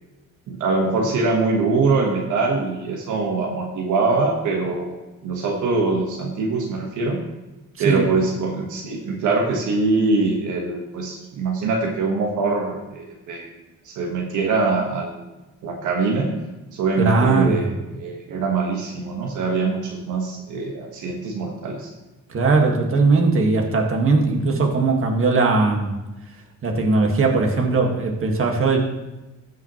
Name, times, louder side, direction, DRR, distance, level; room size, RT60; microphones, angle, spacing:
voice 1, 0.5-4.9 5.2-7.2 7.8-13.6 13.8-15.2 15.6-16.3 16.7-21.9, right 3 dB, 75° right, 0 dB, 1.5 m, -23 dB
voice 2, 17.0-17.7 22.3-25.9 26.6-28.8, right 3 dB, 45° right, 1 dB, 1.8 m, -19 dB
15.0 x 5.8 x 3.1 m, 1.1 s
cardioid pair, 90°, 30 cm